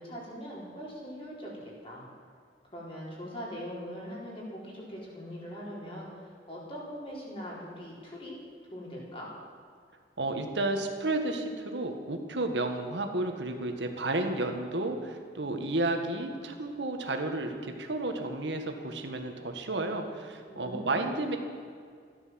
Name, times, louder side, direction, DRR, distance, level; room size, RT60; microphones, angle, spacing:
voice 1, 0.0-2.1 2.7-8.3 8.7-9.3 20.5-21.0, equal, 30° left, -4 dB, 4.5 m, -41 dB
voice 2, 10.2-21.4, right 2 dB, 85° right, 5 dB, 1.7 m, -32 dB
14.0 x 12.5 x 7.7 m, 2.1 s
head